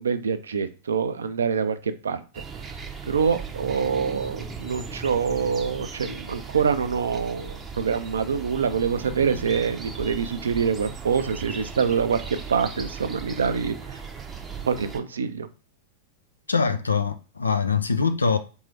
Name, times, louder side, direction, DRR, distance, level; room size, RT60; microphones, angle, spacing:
voice 1, 0.0-2.2 3.1-12.2 12.5-13.8 14.7-15.5, right 6 dB, 75° right, 0.5 m, -25 dB
sound 1, 2.3-15.0, right 5 dB, 20° right, 0.6 m, -37 dB
voice 2, 16.5-18.4, left 5 dB, 85° left, 0.4 m, -23 dB
3.6 x 2.7 x 3.2 m
figure-of-eight pair, 95°, 0 cm